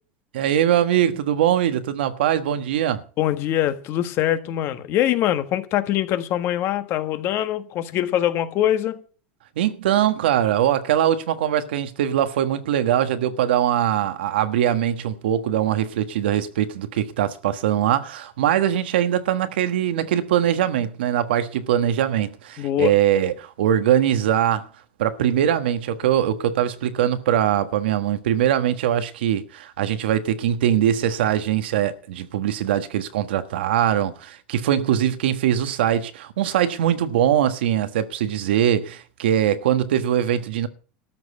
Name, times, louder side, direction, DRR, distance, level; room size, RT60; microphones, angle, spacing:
voice 1, 0.3-3.0 9.6-24.7 25.0-40.7, right 10 dB, 85° right, 1.4 m, -22 dB
voice 2, 3.2-9.0 22.6-22.9, left 12 dB, 45° left, 1.5 m, -23 dB
13.0 x 6.3 x 8.2 m
supercardioid pair, 120°, 5 cm